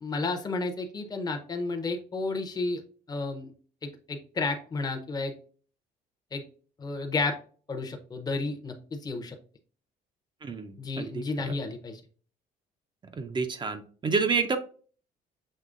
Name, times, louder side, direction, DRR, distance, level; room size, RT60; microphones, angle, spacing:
voice 1, 0.0-2.8 3.1-3.5 3.8-5.3 6.3-6.4 6.8-7.3 7.7-9.3 10.8-12.0, left 3 dB, 25° left, 5 dB, 0.7 m, -32 dB
voice 2, 10.4-11.2 13.2-14.6, right 4 dB, 25° right, 8 dB, 0.4 m, -29 dB
6.4 x 2.9 x 2.4 m, 0.43 s
cardioid pair, 110°, 17 cm